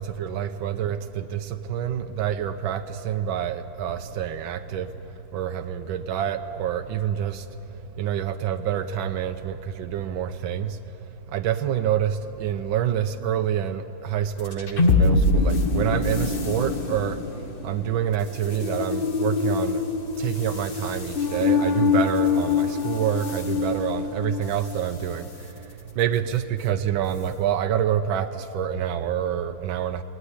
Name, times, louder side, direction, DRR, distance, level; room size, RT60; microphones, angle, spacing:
voice 1, 0.0-7.6 8.0-10.8 11.3-17.3 17.6-19.9 20.2-30.0, right 9 dB, 90° right, 1.5 m, -27 dB
sound 1, 14.4-24.9, left 4 dB, 35° left, 1.2 m, -24 dB
20.0 x 18.0 x 9.9 m
omnidirectional pair, 2.1 m